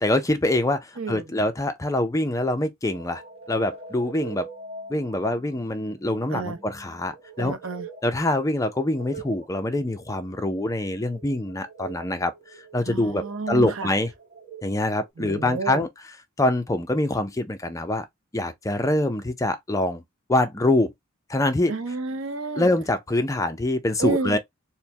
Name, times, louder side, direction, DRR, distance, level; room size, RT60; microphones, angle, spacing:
voice 1, 0.0-3.2 3.5-4.5 4.9-7.6 8.0-12.3 12.7-14.1 14.6-15.9 16.4-18.0 18.3-20.0 20.3-20.9 21.3-21.7 22.6-24.4, left 1 dB, 15° left, 0.5 m, -24 dB
sound 1, 2.9-15.1, right 3 dB, 30° right, 1.1 m, -44 dB
voice 2, 7.4-7.8 12.9-13.9 15.2-15.9 21.7-22.7 24.0-24.4, right 3 dB, 70° right, 0.7 m, -30 dB
4.3 x 2.1 x 3.4 m
head